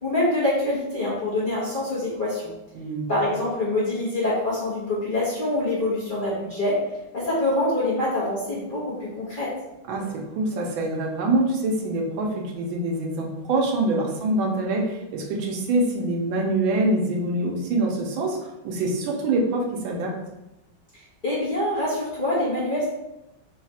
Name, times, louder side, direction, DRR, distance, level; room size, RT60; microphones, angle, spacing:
voice 1, 0.0-2.5 3.1-6.8 7.1-9.5 20.9-22.9, left 1 dB, 35° left, -9 dB, 0.9 m, -25 dB
voice 2, 2.7-3.1 9.9-18.4 18.6-20.1, right 2 dB, 80° right, -1 dB, 1.5 m, -25 dB
3.9 x 2.4 x 4.1 m, 0.93 s
omnidirectional pair, 2.2 m